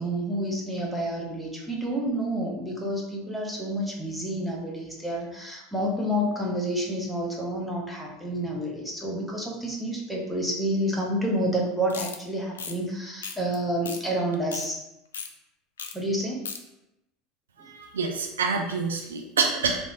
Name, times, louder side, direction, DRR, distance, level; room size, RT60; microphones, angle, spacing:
voice 1, 0.0-14.8 15.9-16.4, right 1 dB, ahead, -3 dB, 0.9 m, -29 dB
sound 1, 11.9-12.2 12.5-12.7 13.2-13.5 13.8-14.0 14.3-14.7 15.1-15.3 15.8-15.9 16.2-16.6, left 5 dB, 70° left, 0.3 m, -35 dB
voice 2, 17.6-19.8, right 4 dB, 70° right, 2 dB, 0.4 m, -27 dB
3.3 x 2.5 x 3.6 m, 0.89 s
figure-of-eight pair, 75°, 0 cm